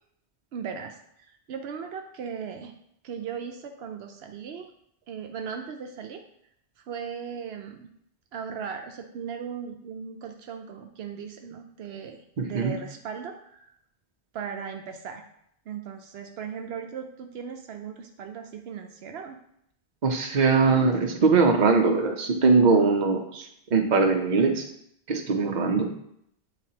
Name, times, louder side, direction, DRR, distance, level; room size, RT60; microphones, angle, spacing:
voice 1, 0.5-2.7 3.0-4.7 5.1-6.2 6.8-7.9 8.3-13.7 14.3-15.3 15.7-19.4, right 7 dB, 80° right, 4 dB, 0.8 m, -38 dB
voice 2, 12.4-12.7 20.0-24.7 25.1-25.9, right 4 dB, 45° right, 3 dB, 0.8 m, -21 dB
9.0 x 4.0 x 2.9 m, 0.73 s
omnidirectional pair, 1.1 m